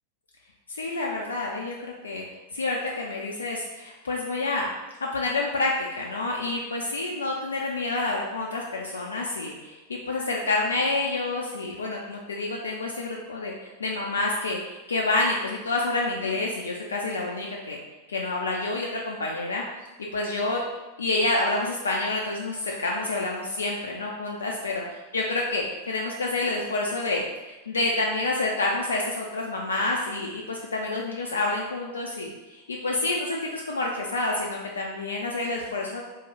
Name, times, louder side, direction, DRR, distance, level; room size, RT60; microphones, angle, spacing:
voice 1, 0.7-2.2 2.5-4.7 5.0-17.8 18.1-19.6 20.1-20.6 21.0-36.0, left 2 dB, 70° left, -2 dB, 0.3 m, -28 dB
3.0 x 2.1 x 3.9 m, 1.1 s
figure-of-eight pair, 90°, 0 cm